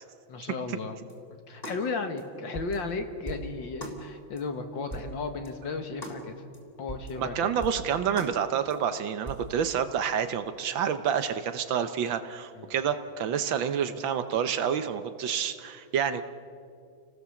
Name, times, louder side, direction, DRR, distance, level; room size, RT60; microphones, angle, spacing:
voice 1, 0.3-1.0 1.3-6.4 6.8-7.5 12.5-12.7, left 4 dB, 60° left, 6 dB, 2.2 m, -34 dB
sound 1, 1.1-1.2 1.6-1.8 2.2-2.3 2.5-2.8 3.3-3.5 3.8-4.0 4.4-4.5 4.9-5.1 5.4-5.5 6.0-6.2 6.5-6.6 6.9-7.1 7.6-7.8 8.2-8.3 8.7-8.8 9.3-9.5, right 2 dB, 15° left, 3.6 m, -39 dB
voice 2, 7.2-16.2, right 8 dB, 70° right, 10 dB, 1.6 m, -28 dB
29.0 x 19.0 x 7.1 m, 2.4 s
omnidirectional pair, 2.3 m